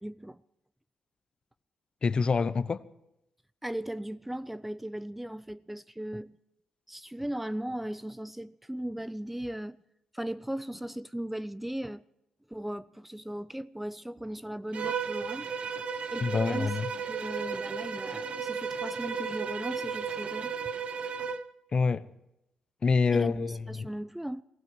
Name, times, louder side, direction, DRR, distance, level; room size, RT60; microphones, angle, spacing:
voice 1, 0.0-0.4 3.6-6.4 6.9-9.8 10.1-12.0 12.5-15.5 16.1-16.7 17.0-20.7 23.1-24.4, right 1 dB, 5° right, 0.5 m, -37 dB
voice 2, 2.0-2.8 16.2-16.9 21.7-22.1 22.8-23.9, left 4 dB, 45° left, 0.8 m, -26 dB
Bowed string instrument, 14.7-21.5, right 6 dB, 60° right, 0.7 m, -34 dB
17.5 x 16.5 x 4.6 m
cardioid pair, 65°, 2 cm